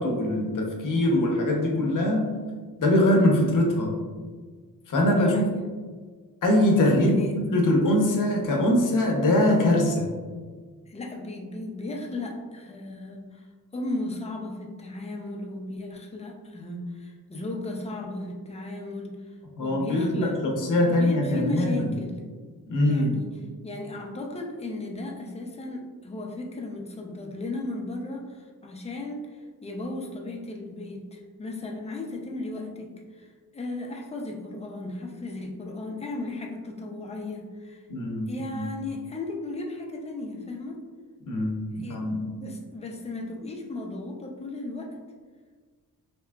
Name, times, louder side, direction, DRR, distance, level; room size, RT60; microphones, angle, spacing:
voice 1, 0.0-2.3 2.8-3.9 4.9-5.5 6.4-10.1 19.6-21.9 22.7-23.1 37.9-38.7 41.3-42.3, left 1 dB, 55° left, 0 dB, 0.7 m, -23 dB
voice 2, 5.1-5.6 6.9-7.4 10.9-13.5 13.7-20.3 20.9-22.2 22.8-37.8 38.3-40.8 41.8-42.1 42.4-44.9, left 2 dB, 20° left, 0 dB, 0.4 m, -35 dB
3.4 x 2.8 x 2.2 m, 1.5 s
cardioid pair, 100°, 38 cm